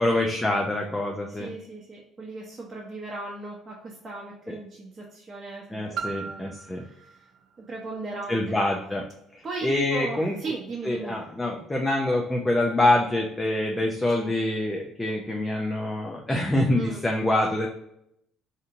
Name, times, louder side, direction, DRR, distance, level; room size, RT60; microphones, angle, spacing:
voice 1, 0.0-1.5 4.5-4.6 5.7-6.8 8.3-9.0 9.3-10.4 10.8-17.7, left 1 dB, 10° left, 0 dB, 0.4 m, -25 dB
voice 2, 1.3-7.1 7.7-8.4 9.4-11.2 14.1-14.3 16.8-17.1, right 3 dB, 25° right, -5 dB, 0.8 m, -37 dB
Piano, 5.9-11.4 12.1-12.2, right 6 dB, 50° right, 0.4 m, -42 dB
3.9 x 2.8 x 2.5 m, 0.77 s
cardioid pair, 135°, 0 cm